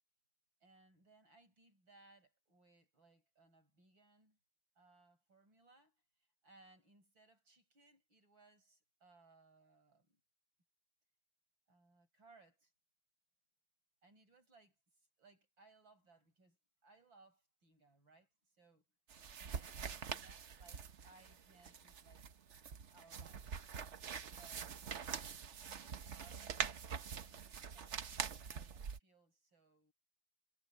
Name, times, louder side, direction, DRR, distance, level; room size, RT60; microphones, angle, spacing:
voice 1, 0.6-4.4 4.8-10.2 11.7-12.7 14.0-19.0 19.4-22.3 22.9-23.6 24.3-25.3 25.7-27.9 28.5-29.9, right 3 dB, 75° right, 8.0 m, -67 dB
sound 1, 19.1-29.0, right 7 dB, 50° right, 1.0 m, -45 dB
omnidirectional pair, 2.1 m